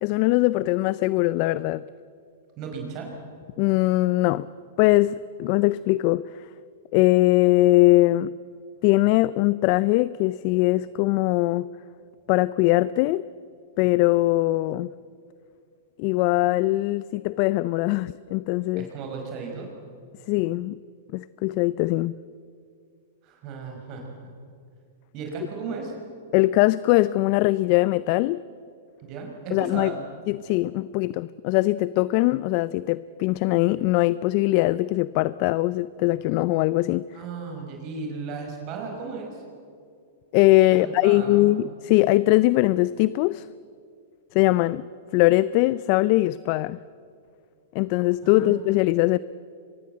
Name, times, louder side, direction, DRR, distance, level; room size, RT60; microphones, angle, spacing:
voice 1, 0.0-1.8 3.6-4.5 4.8-6.3 6.9-8.3 8.8-11.7 12.3-13.2 13.8-14.9 16.0-18.9 20.3-20.7 21.1-22.2 26.3-28.4 29.5-29.9 30.3-37.0 40.3-43.5 44.3-44.9 45.1-46.8 47.7-49.2, left 18 dB, 50° left, 18 dB, 0.5 m, -21 dB
voice 2, 2.6-3.1 18.8-19.7 23.2-24.1 25.1-25.9 29.1-30.0 37.1-39.4 40.7-41.5 48.2-48.6, right 5 dB, 40° right, 2 dB, 5.3 m, -35 dB
24.0 x 21.5 x 7.9 m, 2.3 s
hypercardioid pair, 120°, 0 cm